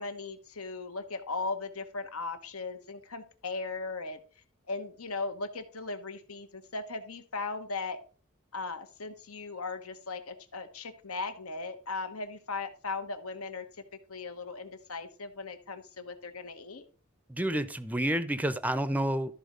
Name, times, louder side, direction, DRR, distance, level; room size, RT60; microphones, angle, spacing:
voice 1, 0.0-4.2 4.7-8.0 8.5-13.6 14.1-16.9, left 3 dB, 75° left, 1.3 m, -38 dB
voice 2, 17.3-19.3, right 1 dB, 5° right, 0.6 m, -29 dB
13.0 x 4.3 x 5.2 m
head